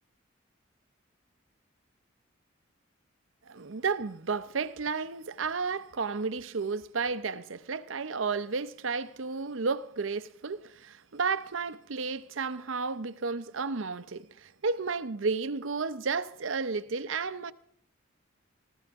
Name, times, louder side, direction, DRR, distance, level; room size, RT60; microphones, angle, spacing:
voice 1, 3.5-17.5, right 4 dB, 80° right, 0.7 m, -32 dB
19.0 x 15.5 x 3.6 m
head